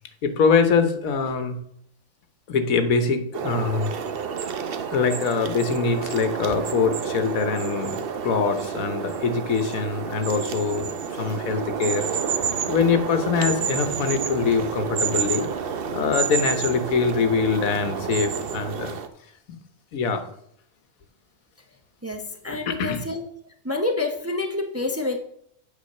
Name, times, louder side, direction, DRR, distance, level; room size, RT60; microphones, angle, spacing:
voice 1, 0.2-1.6 2.5-3.9 4.3-4.5 4.9-12.1 12.7-15.5 15.9-19.0 19.9-20.2 22.5-23.0, left 5 dB, 85° left, 8 dB, 1.4 m, -23 dB
sound 1, 3.3-19.1, right 7 dB, 55° right, 0.8 m, -29 dB
voice 2, 22.0-23.2 23.6-25.2, left 2 dB, 15° right, 3 dB, 0.6 m, -27 dB
8.6 x 4.5 x 6.4 m, 0.69 s
omnidirectional pair, 1.4 m